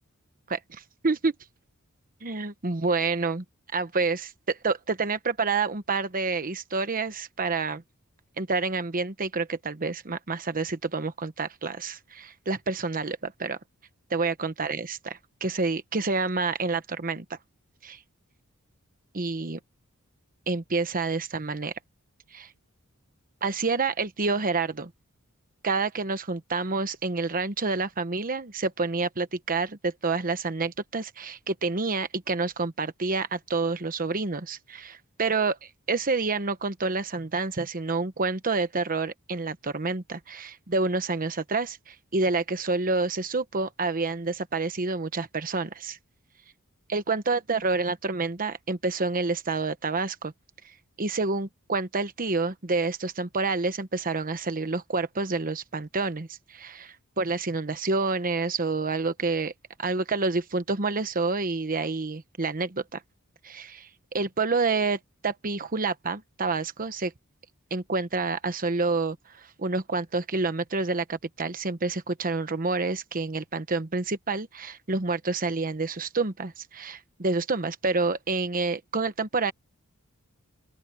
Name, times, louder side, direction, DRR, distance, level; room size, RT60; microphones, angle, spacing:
voice 1, 0.5-1.3 2.2-3.4 3.7-7.8 8.4-13.6 14.1-17.4 17.8-18.0 19.1-19.6 20.5-21.7 22.3-22.5 23.4-24.9 25.6-46.0 46.9-50.3 51.0-59.5 59.8-63.0 63.4-67.1 67.7-79.5, right 3 dB, 40° right, 1.1 m, -28 dB
open air
head